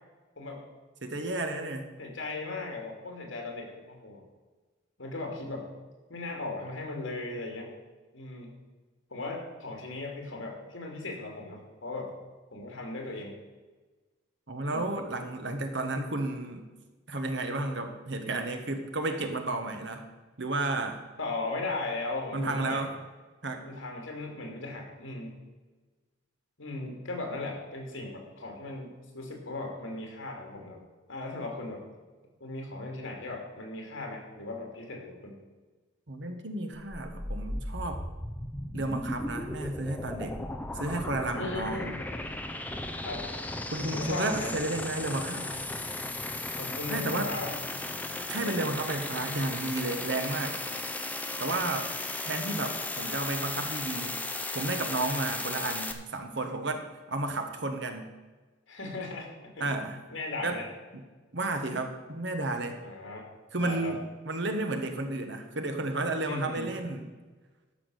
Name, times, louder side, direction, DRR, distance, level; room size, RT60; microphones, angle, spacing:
voice 1, 1.0-1.9 14.5-16.7 17.1-20.0 20.4-21.0 22.3-22.9 23.4-23.6 36.1-38.0 38.7-40.4 40.7-41.9 43.7-45.5 46.9-47.3 48.3-50.6 51.4-51.9 52.2-54.2 54.5-58.1 59.6-60.0 60.4-60.6 61.3-62.8 63.5-67.1, right 2 dB, 60° right, 6 dB, 1.3 m, -32 dB
voice 2, 2.0-4.2 5.0-5.7 6.1-7.7 8.1-8.5 9.1-12.1 12.5-13.3 14.6-14.9 21.2-22.9 23.6-25.4 26.6-30.8 31.1-31.8 32.4-35.3 41.3-42.0 43.0-43.3 43.9-44.6 46.6-47.5 48.3-48.7 58.7-59.7 60.1-60.7 62.8-63.3 63.6-64.0 66.3-66.7, left 2 dB, 80° left, 1 dB, 2.8 m, -37 dB
sound 1, 36.8-55.9, left 2 dB, 10° left, 0.7 m, -36 dB
12.0 x 6.0 x 6.5 m, 1.3 s
head